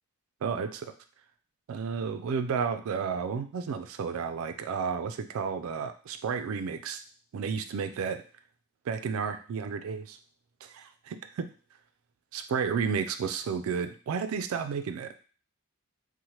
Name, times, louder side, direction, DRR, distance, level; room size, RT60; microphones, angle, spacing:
voice 1, 0.4-0.9 1.7-7.0 7.3-8.2 8.9-10.2 10.6-11.5 12.3-15.1, right 6 dB, 65° right, 9 dB, 0.3 m, -32 dB
2.8 x 2.1 x 3.0 m, 0.40 s
head